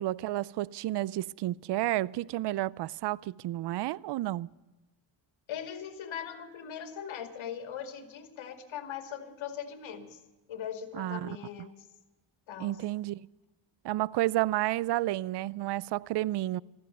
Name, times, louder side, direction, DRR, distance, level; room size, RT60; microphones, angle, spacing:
voice 1, 0.0-4.5 10.9-11.3 12.6-13.3 13.8-16.6, right 16 dB, 60° right, 0.5 m, -31 dB
voice 2, 5.5-10.2 10.5-11.7 12.5-12.8, left 8 dB, 75° left, 2.3 m, -40 dB
14.5 x 14.5 x 6.7 m
cardioid pair, 90°, 47 cm